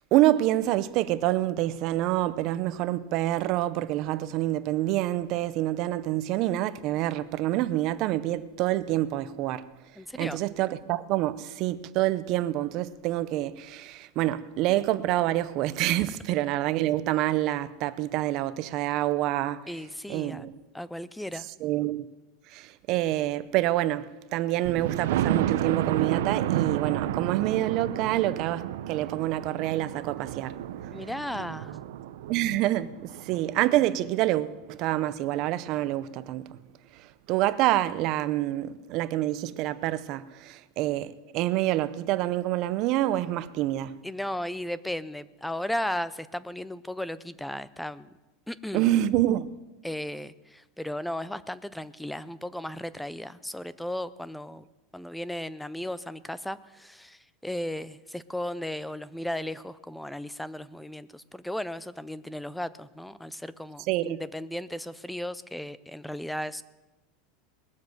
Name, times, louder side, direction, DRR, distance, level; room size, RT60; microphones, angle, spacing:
voice 1, 0.1-9.7 10.2-19.6 20.1-20.6 21.6-22.1 22.5-30.6 32.3-36.6 37.3-43.9 48.7-49.5 63.9-64.2, right 14 dB, 40° right, 0.6 m, -27 dB
voice 2, 10.0-10.4 19.7-20.5 20.7-21.5 30.9-31.8 44.0-48.1 48.5-48.9 49.8-54.6 54.9-66.6, left 1 dB, ahead, 0.4 m, -35 dB
Thunder, 24.6-34.4 34.9-35.0 35.4-35.5 35.8-35.9, right 12 dB, 75° right, 0.6 m, -31 dB
20.0 x 7.4 x 7.8 m
supercardioid pair, 165°, 0 cm